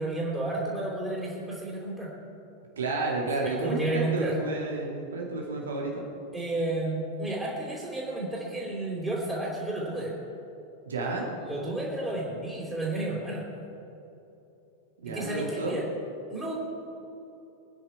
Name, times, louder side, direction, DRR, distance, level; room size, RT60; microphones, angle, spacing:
voice 1, 0.0-2.1 3.4-4.4 6.3-10.1 11.4-13.5 15.1-15.8 16.3-16.5, right 2 dB, 5° right, -7 dB, 3.8 m, -32 dB
voice 2, 2.8-6.1 10.9-11.3 15.0-15.7, right 3 dB, 70° right, -1 dB, 2.4 m, -31 dB
23.0 x 9.8 x 4.6 m, 2.9 s
figure-of-eight pair, 90°, 0 cm